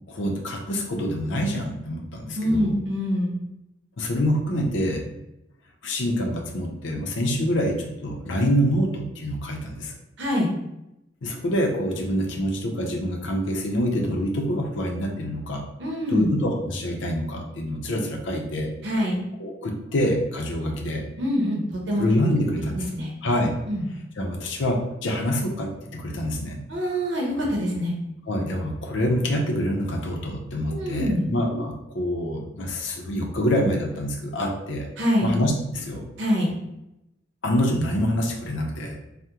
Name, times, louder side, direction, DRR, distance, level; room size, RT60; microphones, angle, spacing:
voice 1, 0.1-2.7 4.0-5.0 5.8-9.9 11.2-15.7 16.1-18.7 19.4-21.1 22.0-22.8 23.2-23.5 24.2-26.6 28.3-34.9 35.2-36.0 37.4-39.0, equal, 75° left, 1 dB, 0.5 m, -26 dB
voice 2, 2.3-3.3 10.2-10.5 15.8-16.3 18.8-19.2 21.2-22.0 22.9-23.1 23.7-23.9 26.7-27.9 30.7-31.3 35.0-35.3 36.2-36.5, equal, 70° right, -1 dB, 0.7 m, -24 dB
3.5 x 2.1 x 2.8 m, 0.88 s
head